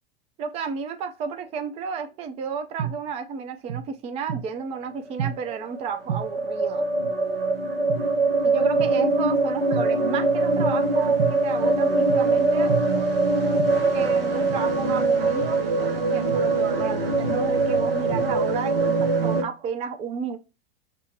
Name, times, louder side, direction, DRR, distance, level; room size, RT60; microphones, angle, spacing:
voice 1, 0.4-6.9 8.4-12.7 13.9-20.4, right 6 dB, 20° right, 0.4 m, -32 dB
sound 1, 2.8-2.9 3.7-3.8 4.3-4.4 5.0-19.4, right 3 dB, 75° right, 0.8 m, -23 dB
5.0 x 2.1 x 3.0 m
figure-of-eight pair, 90°, 30 cm